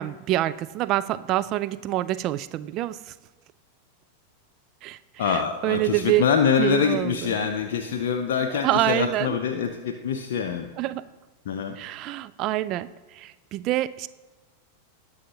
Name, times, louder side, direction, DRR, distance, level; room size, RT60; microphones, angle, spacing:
voice 1, 0.0-3.1 4.8-6.3 6.6-7.4 8.5-9.4 10.8-11.0 11.8-14.1, right 15 dB, 40° right, 15 dB, 0.3 m, -26 dB
voice 2, 5.2-10.7 11.5-11.8, left 7 dB, 55° left, 5 dB, 0.6 m, -25 dB
18.5 x 6.4 x 2.8 m, 1.3 s
figure-of-eight pair, 90°, 0 cm